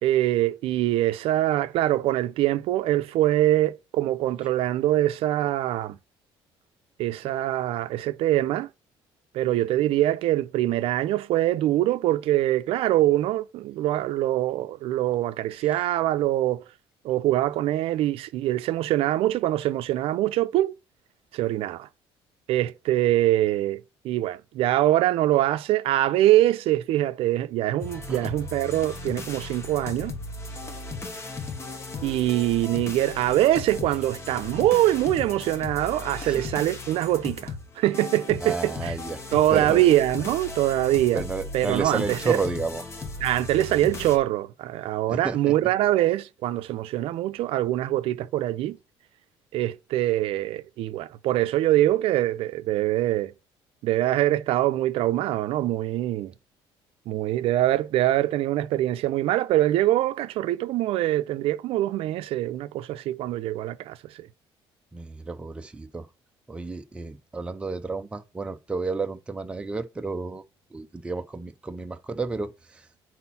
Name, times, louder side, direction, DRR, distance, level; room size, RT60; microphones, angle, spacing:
voice 1, 0.0-6.0 7.0-8.7 9.3-16.6 17.0-20.7 21.3-21.9 22.5-30.1 32.0-39.0 39.3-41.2 41.5-42.4 43.2-48.8 49.5-53.3 53.8-56.3 57.1-64.3, right 14 dB, 65° right, 0.5 m, -24 dB
sound 1, 27.8-44.2, left 3 dB, 25° left, 1.0 m, -36 dB
voice 2, 38.4-39.2 39.5-39.8 41.1-42.8 45.1-45.5 64.9-66.1 66.5-70.4 70.7-72.8, right 4 dB, 10° right, 0.5 m, -31 dB
4.4 x 4.1 x 5.6 m
cardioid pair, 150°, 10 cm